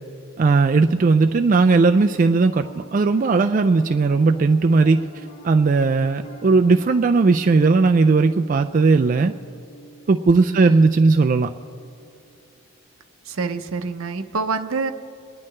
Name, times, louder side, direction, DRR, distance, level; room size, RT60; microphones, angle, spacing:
voice 1, 0.4-5.0 5.4-9.3 10.1-11.5, right 4 dB, 40° right, 6 dB, 0.3 m, -17 dB
Piano, 1.0-12.5, right 2 dB, 35° left, 1.5 m, -45 dB
voice 2, 10.5-10.9 13.3-14.9, right 4 dB, 75° right, 9 dB, 0.7 m, -27 dB
30.0 x 11.0 x 3.2 m, 2.6 s
head